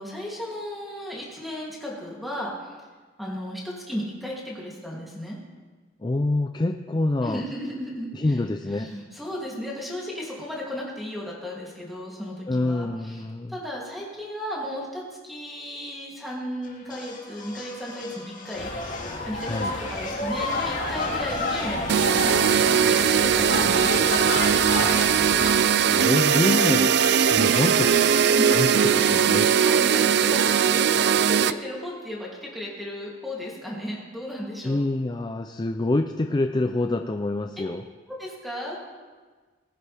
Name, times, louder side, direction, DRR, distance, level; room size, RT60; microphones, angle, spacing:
voice 1, 0.0-2.7 3.2-5.4 7.2-8.4 8.7-18.7 19.2-19.6 19.9-24.2 28.2-29.0 29.6-34.8 37.6-37.7 38.2-38.8, equal, ahead, -4 dB, 2.8 m, -35 dB
voice 2, 6.0-7.4 8.1-8.9 12.5-13.5 19.4-19.7 24.8-24.9 25.7-27.0 27.3-27.9 28.5-29.5 34.6-37.8, left 2 dB, 25° left, 5 dB, 0.4 m, -26 dB
sound 1, 16.6-30.7, left 3 dB, 45° left, 2.2 m, -43 dB
sound 2, 18.6-25.6, left 2 dB, 70° left, 3.8 m, -29 dB
sound 3, 21.9-31.5, right 8 dB, 60° right, 0.4 m, -20 dB
20.0 x 9.9 x 3.5 m, 1.4 s
head